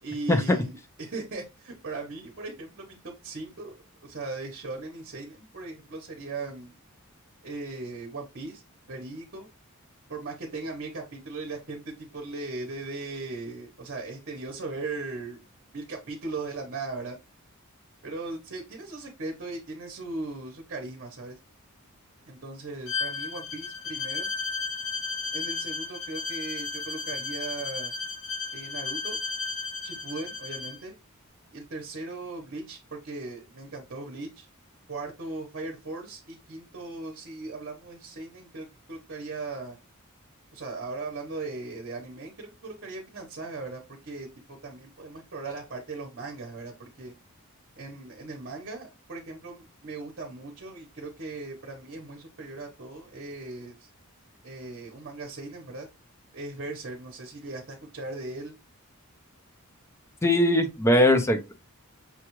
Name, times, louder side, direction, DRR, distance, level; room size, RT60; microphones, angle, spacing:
voice 1, 0.0-3.7 4.0-6.7 7.4-8.6 8.9-9.5 10.1-15.4 15.7-17.2 18.0-21.4 22.3-24.3 25.3-27.9 28.5-29.2 29.8-30.9 31.5-34.5 34.9-39.8 40.5-47.1 47.8-53.9 54.4-55.9 56.3-58.5, right 3 dB, 55° right, 0.9 m, -38 dB
Bowed string instrument, 22.9-30.8, left 4 dB, 65° left, 0.8 m, -34 dB
voice 2, 60.2-61.5, left 1 dB, 10° left, 0.5 m, -20 dB
5.8 x 2.3 x 3.0 m
head